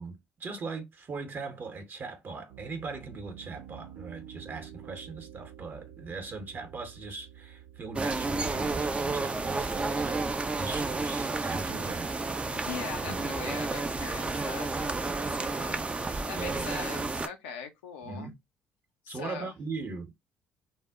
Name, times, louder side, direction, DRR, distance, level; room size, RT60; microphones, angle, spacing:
voice 1, 0.0-10.3 10.5-12.6 13.0-13.7 16.3-17.0 18.0-18.4 19.1-20.1, right 4 dB, 40° right, 0.8 m, -40 dB
Piano, 2.5-10.0, right 10 dB, 75° right, 0.5 m, -49 dB
sound 1, 8.0-17.3, right 3 dB, 25° right, 0.4 m, -31 dB
voice 2, 12.5-18.3 19.0-19.5, left 7 dB, 85° left, 0.5 m, -42 dB
2.1 x 2.0 x 3.4 m
hypercardioid pair, 55°, 5 cm